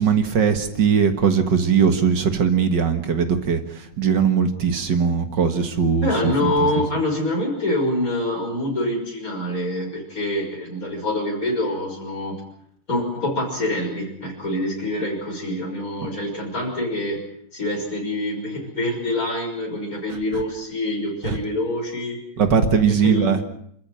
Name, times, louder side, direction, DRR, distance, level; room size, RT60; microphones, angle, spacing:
voice 1, 0.0-6.5 16.0-16.1 21.2-21.4 22.4-23.5, right 6 dB, 65° right, 8 dB, 2.3 m, -20 dB
voice 2, 6.0-12.4 12.9-17.2 17.5-22.2 22.9-23.4, left 1 dB, 45° left, 1 dB, 6.6 m, -25 dB
27.5 x 14.0 x 8.9 m, 0.70 s
omnidirectional pair, 2.1 m